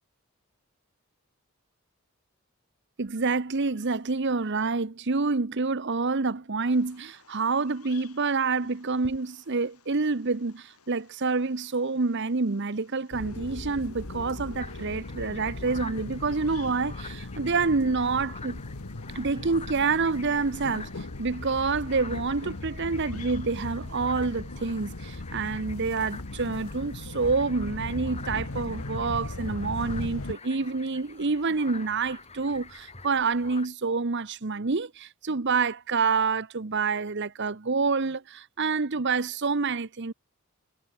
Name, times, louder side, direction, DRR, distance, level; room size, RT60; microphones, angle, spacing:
voice 1, 3.0-18.6 19.1-20.9 21.2-40.1, right 4 dB, 50° right, 0.9 m, -27 dB
Bird vocalization bird call bird song, 6.7-26.7, left 8 dB, 90° left, 6.4 m, -59 dB
sound 1, 13.1-30.4, left 2 dB, 70° left, 1.3 m, -38 dB
sound 2, 14.6-33.7, left 5 dB, 30° left, 5.0 m, -47 dB
head